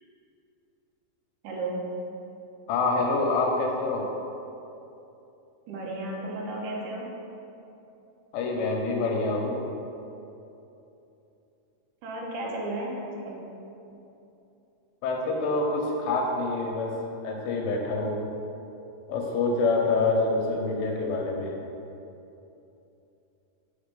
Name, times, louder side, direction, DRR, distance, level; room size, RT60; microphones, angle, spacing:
voice 1, 1.4-1.9 5.7-7.1 12.0-13.4, right 2 dB, 70° right, -2 dB, 2.0 m, -33 dB
voice 2, 2.7-4.1 8.3-9.6 15.0-16.9 17.2-18.2 19.1-21.5, left 3 dB, 80° left, 0 dB, 2.3 m, -26 dB
5.2 x 5.0 x 5.2 m, 2.9 s
omnidirectional pair, 4.7 m